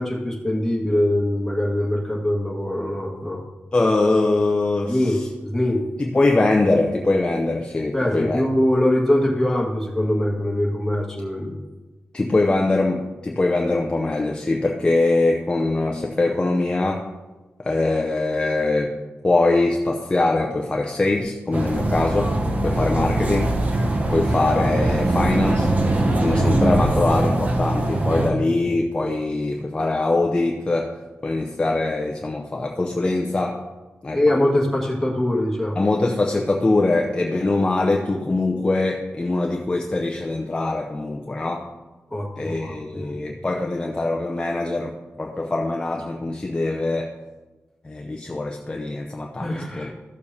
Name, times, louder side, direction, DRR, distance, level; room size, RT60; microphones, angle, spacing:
voice 1, 0.0-3.4 4.9-5.8 7.9-11.5 28.6-28.7 34.1-35.8 42.1-43.2 49.4-49.9, left 1 dB, 5° left, -4 dB, 1.7 m, -23 dB
voice 2, 3.7-5.3 6.0-8.4 12.1-17.0 17.6-18.9 19.2-22.3 22.6-23.5 24.1-25.7 26.2-31.0 31.2-33.6 34.0-34.2 35.8-41.7 42.4-47.1 47.8-49.9, left 2 dB, 20° left, 1 dB, 0.6 m, -22 dB
sound 1, 21.5-28.3, right 1 dB, 35° right, 0.9 m, -21 dB
14.0 x 6.8 x 2.8 m, 1.2 s
wide cardioid pair, 145°, 4 cm